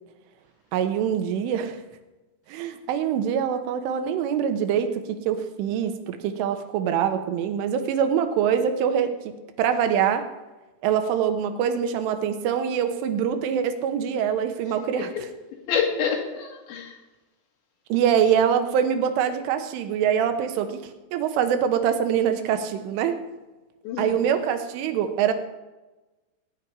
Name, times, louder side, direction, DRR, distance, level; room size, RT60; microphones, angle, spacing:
voice 1, 0.7-1.8 2.5-9.2 9.6-10.3 10.8-15.1 17.9-20.8 21.1-23.2 24.0-25.3, right 8 dB, 85° right, 8 dB, 3.6 m, -24 dB
voice 2, 15.5-17.0 23.8-24.2, left 7 dB, 70° left, 1 dB, 4.3 m, -28 dB
18.5 x 6.2 x 9.6 m, 1.1 s
omnidirectional pair, 5.5 m